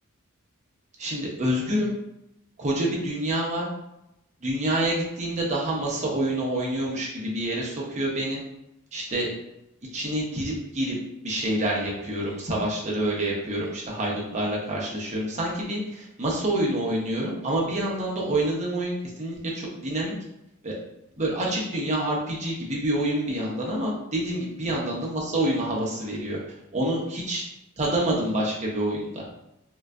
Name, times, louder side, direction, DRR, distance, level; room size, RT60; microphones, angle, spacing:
voice 1, 1.0-1.9 2.6-3.7 4.4-8.4 8.9-9.3 9.9-11.0 11.2-20.1 20.6-20.7 21.2-26.4 26.7-27.4 27.8-29.2, right 1 dB, 35° right, -3 dB, 0.8 m, -27 dB
3.7 x 2.5 x 2.2 m, 0.85 s
head